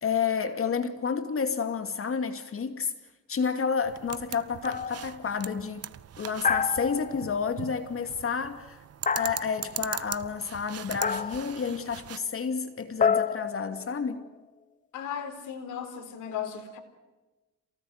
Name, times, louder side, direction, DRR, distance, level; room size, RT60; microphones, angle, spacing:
voice 1, 0.0-2.9 3.3-5.9 6.2-8.8 9.1-14.2, left 6 dB, 45° left, 2.5 m, -30 dB
sound 1, 3.9-12.2, right 9 dB, 55° right, 1.2 m, -41 dB
sound 2, 4.6-5.1 6.4-7.4 9.1-9.8 11.0-11.6 13.0-14.3, left 6 dB, 25° left, 0.8 m, -29 dB
voice 2, 14.9-16.8, left 8 dB, 85° left, 4.1 m, -36 dB
28.0 x 18.5 x 9.5 m
cardioid pair, 90°, 30 cm